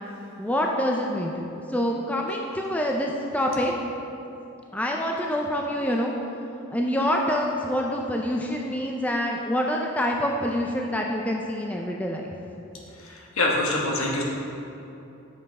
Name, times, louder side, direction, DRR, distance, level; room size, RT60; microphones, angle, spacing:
voice 1, 0.4-3.7 4.7-6.1 6.7-12.3, equal, 5° left, 0 dB, 0.3 m, -26 dB
voice 2, 13.0-14.2, left 2 dB, 80° left, -2 dB, 1.3 m, -25 dB
7.5 x 5.6 x 4.2 m, 2.8 s
head